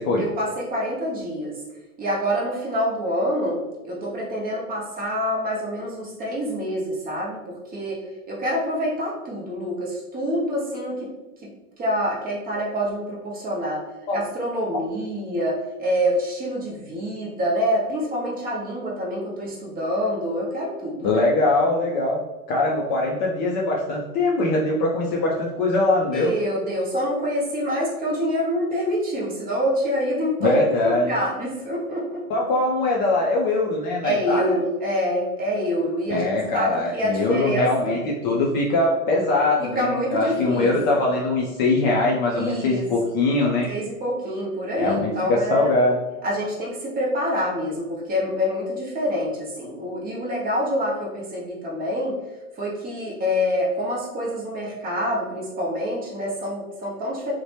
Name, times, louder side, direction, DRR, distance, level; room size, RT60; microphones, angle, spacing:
voice 1, 0.2-1.6 2.0-3.6 3.8-11.1 11.4-11.5 11.8-13.8 14.1-21.1 26.1-30.6 30.8-32.3 34.0-38.0 39.6-40.8 42.3-42.8 43.7-45.7 46.2-52.2 52.6-57.3, equal, 20° right, -3 dB, 0.7 m, -26 dB
voice 2, 21.0-22.2 22.5-26.3 30.4-31.1 32.3-34.6 36.1-43.7 44.8-46.0, left 2 dB, 35° left, -2 dB, 0.4 m, -22 dB
2.7 x 2.1 x 3.1 m, 1.1 s
hypercardioid pair, 120°, 43 cm